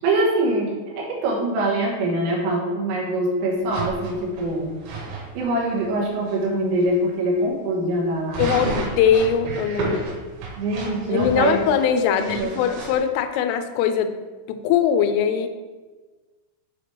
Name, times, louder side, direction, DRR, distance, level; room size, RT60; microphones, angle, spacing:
voice 1, 0.0-4.8 5.2-8.5 10.6-11.6 12.2-12.5, right 1 dB, 70° right, -3 dB, 3.3 m, -24 dB
sound 1, 3.7-5.2 5.8-5.9 6.3-6.4 6.8-6.9 8.3-13.0, right 3 dB, 90° right, 4.4 m, -31 dB
voice 2, 8.4-10.1 11.1-14.2 14.5-15.5, left 8 dB, 85° left, 9 dB, 3.0 m, -21 dB
8.4 x 5.0 x 3.3 m, 1.3 s
omnidirectional pair, 5.9 m